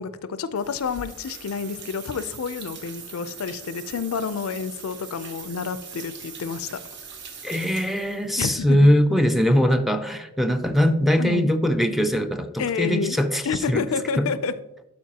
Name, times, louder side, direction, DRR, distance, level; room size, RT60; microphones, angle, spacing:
voice 1, 0.0-6.8 8.4-8.9 11.2-11.5 12.6-13.2 13.4-14.6, left 5 dB, 75° left, 14 dB, 0.4 m, -29 dB
sound 1, 0.6-8.4, right 5 dB, 55° right, 1.0 m, -41 dB
voice 2, 7.4-13.4 13.7-13.8 14.2-14.3, equal, ahead, 6 dB, 0.4 m, -21 dB
12.0 x 4.5 x 2.8 m, 0.94 s
head